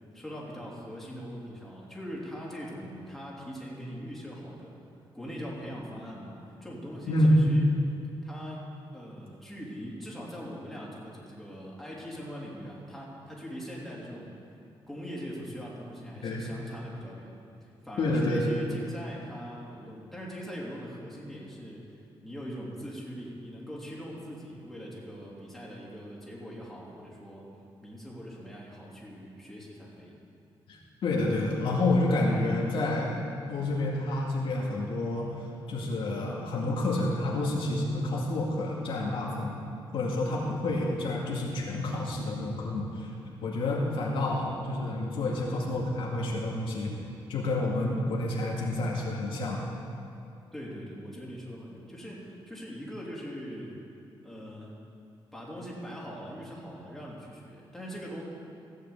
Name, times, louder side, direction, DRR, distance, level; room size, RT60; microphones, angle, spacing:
voice 1, 0.1-4.8 5.1-6.3 6.6-7.7 8.2-8.6 8.9-14.4 14.9-17.4 17.8-27.5 27.8-30.1 50.5-53.8 54.2-54.8 55.3-58.2, equal, ahead, -5 dB, 3.2 m, -41 dB
voice 2, 7.1-7.5 16.2-16.5 18.0-18.4 30.7-33.1 33.5-35.3 35.7-39.6 39.9-43.1 43.4-47.0 47.3-49.7, left 1 dB, 70° left, -3 dB, 2.2 m, -28 dB
15.0 x 6.7 x 8.3 m, 2.7 s
cardioid pair, 125°, 9 cm